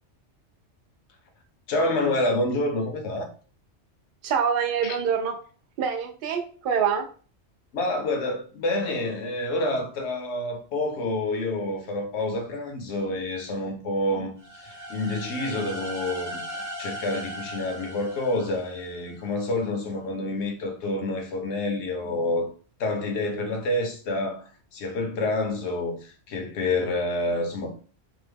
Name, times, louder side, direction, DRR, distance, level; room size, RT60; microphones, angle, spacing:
voice 1, 1.7-3.3 4.8-4.9 7.7-22.5 22.8-27.7, left 2 dB, 75° left, 1.0 m, -28 dB
voice 2, 4.2-5.4 5.8-7.1, right 7 dB, 60° right, 0.7 m, -25 dB
sound 1, 14.4-19.2, equal, 25° right, 0.4 m, -38 dB
2.8 x 2.0 x 3.3 m
omnidirectional pair, 1.2 m